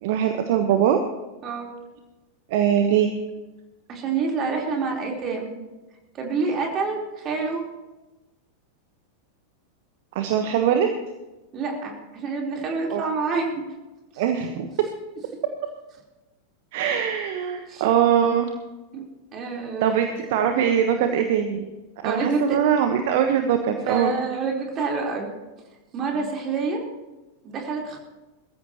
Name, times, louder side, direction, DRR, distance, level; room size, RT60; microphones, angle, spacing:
voice 1, 0.0-1.0 2.5-3.1 10.1-10.9 12.9-13.0 14.2-14.7 16.7-18.5 19.8-21.6 22.0-24.1, right 9 dB, 50° right, 6 dB, 1.2 m, -22 dB
voice 2, 3.9-5.5 6.1-7.6 11.5-13.6 17.7-17.8 18.9-19.0 19.3-20.0 22.0-22.6 23.8-25.3 25.9-26.8 27.4-28.0, right 4 dB, 30° right, 0 dB, 4.1 m, -27 dB
21.5 x 14.0 x 3.1 m, 1.1 s
figure-of-eight pair, 90°, 0 cm